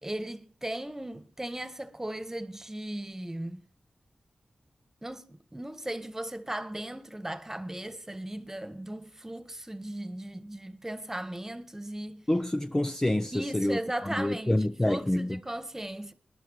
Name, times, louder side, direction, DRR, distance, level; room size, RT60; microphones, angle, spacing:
voice 1, 0.0-3.6 5.0-12.2 13.3-16.1, right 1 dB, 15° right, 1.6 m, -37 dB
voice 2, 12.3-15.4, left 1 dB, 15° left, 0.7 m, -27 dB
21.5 x 11.0 x 3.2 m
cardioid pair, 55°, 3 cm